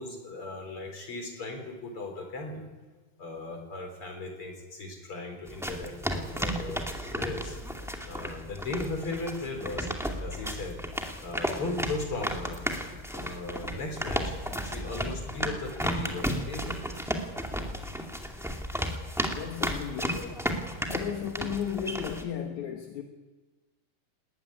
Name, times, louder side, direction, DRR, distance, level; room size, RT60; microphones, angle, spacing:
voice 1, 0.0-2.7 3.2-7.6 8.1-10.8 11.2-12.6 13.1-14.4 14.6-16.8, left 2 dB, 35° left, 4.9 m, -37 dB
sound 1, 5.5-22.2, equal, ahead, 0.8 m, -34 dB
voice 2, 19.3-20.4 20.9-23.0, left 8 dB, 60° left, 2.3 m, -34 dB
19.0 x 19.0 x 9.9 m
omnidirectional pair, 4.6 m